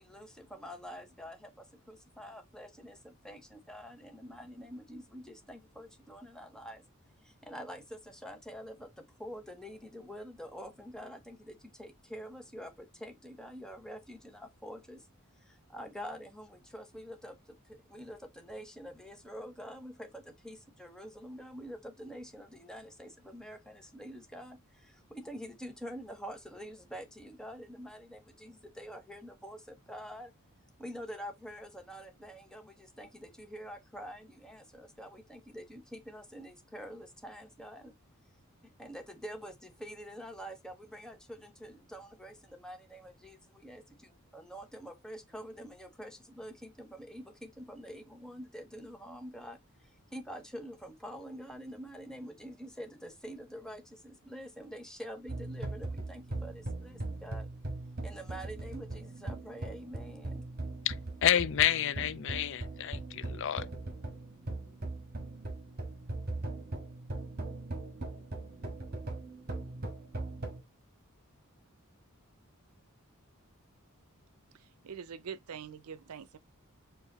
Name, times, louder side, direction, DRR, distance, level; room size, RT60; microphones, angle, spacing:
voice 1, 0.0-6.8 7.2-15.1 15.4-30.3 30.8-37.9 38.6-57.5 58.0-60.4, equal, 5° left, 1.0 m, -46 dB
sound 1, 55.3-70.6, right 2 dB, 45° right, 1.5 m, -40 dB
voice 2, 61.2-63.0 63.4-63.6, left 10 dB, 60° left, 0.4 m, -28 dB
voice 3, 74.5-76.4, right 7 dB, 90° right, 0.5 m, -44 dB
4.8 x 2.6 x 4.1 m
head